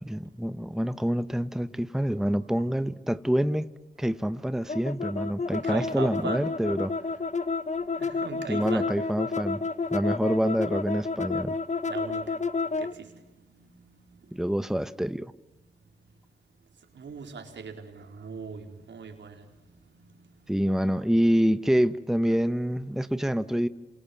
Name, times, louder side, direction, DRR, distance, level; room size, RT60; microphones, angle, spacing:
voice 1, 0.0-3.7 4.0-6.9 8.5-9.6 9.9-11.6 14.3-15.3 20.5-23.7, equal, ahead, 1.1 m, -26 dB
sound 1, 4.7-12.9, left 4 dB, 40° left, 1.3 m, -30 dB
voice 2, 5.6-6.6 7.9-8.9 11.9-12.2 12.8-13.1 16.9-19.4, right 5 dB, 80° right, 4.3 m, -39 dB
28.0 x 27.0 x 7.3 m
supercardioid pair, 40°, 19 cm